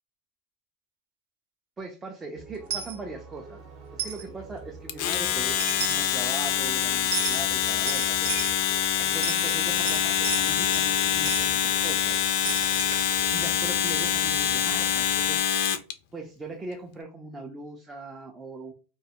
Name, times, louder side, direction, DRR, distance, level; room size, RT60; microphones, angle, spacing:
voice 1, 1.8-3.6 3.9-12.2 13.3-15.6 16.1-18.7, right 2 dB, 15° right, 1 dB, 0.4 m, -40 dB
sound 1, 2.4-15.4, right 4 dB, 45° right, 0.7 m, -45 dB
Coin (dropping), 2.7-3.0 4.0-4.2 5.3-5.4 5.6-6.1 7.1-7.4 7.9-8.6 9.1-10.9 11.3-11.5 12.4-15.1, right 6 dB, 75° right, 0.6 m, -34 dB
Domestic sounds home sounds, 4.9-15.9, left 10 dB, 55° left, 0.3 m, -25 dB
2.2 x 2.0 x 2.7 m, 0.36 s
supercardioid pair, 125°, 0 cm